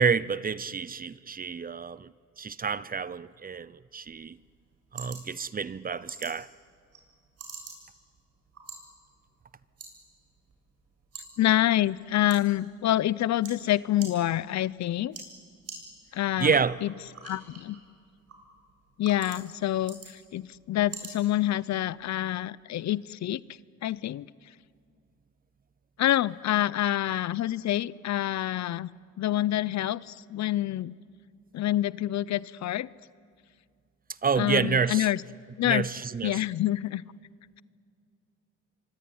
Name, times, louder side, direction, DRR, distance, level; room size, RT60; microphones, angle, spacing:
voice 1, 0.0-2.1 2.4-4.4 4.9-6.5 16.4-16.8 34.2-35.1 35.6-36.4, right 6 dB, 30° right, 0.7 m, -28 dB
sound 1, 4.1-22.1, right 4 dB, 55° right, 8.0 m, -49 dB
voice 2, 11.4-15.2 16.1-16.9 17.2-17.8 19.0-23.4 23.8-24.3 26.0-28.9 29.2-30.9 31.5-32.9 34.4-35.2 35.6-35.9 36.2-37.0, left 13 dB, 65° left, 0.7 m, -27 dB
25.5 x 24.0 x 9.6 m
cardioid pair, 90°, 30 cm